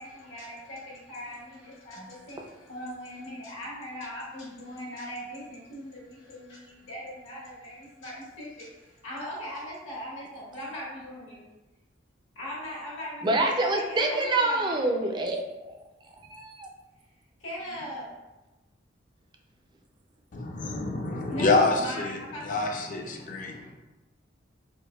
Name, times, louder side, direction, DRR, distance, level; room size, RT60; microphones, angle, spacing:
voice 1, 0.0-11.4 12.3-15.1 17.4-18.1 21.3-23.5, equal, 75° left, -6 dB, 1.4 m, -40 dB
voice 2, 13.2-15.8 16.2-16.7, right 2 dB, 25° right, 2 dB, 0.4 m, -27 dB
voice 3, 20.6-22.2 22.4-23.7, left 3 dB, 40° left, 2 dB, 0.4 m, -26 dB
4.5 x 2.1 x 2.2 m, 1.0 s
head